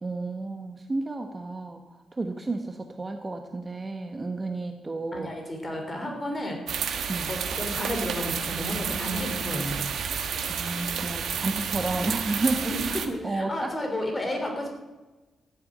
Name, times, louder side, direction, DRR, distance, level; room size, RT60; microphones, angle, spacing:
voice 1, 0.0-1.8 2.1-5.3 7.1-7.3 10.5-13.7, right 2 dB, 20° right, 5 dB, 1.0 m, -31 dB
voice 2, 5.1-6.6 7.3-9.9 12.6-14.7, left 1 dB, 20° left, 2 dB, 3.2 m, -32 dB
sound 1, 6.7-13.1, right 7 dB, 70° right, 1.3 m, -30 dB
14.0 x 7.7 x 8.6 m, 1.1 s
wide cardioid pair, 140°, 0 cm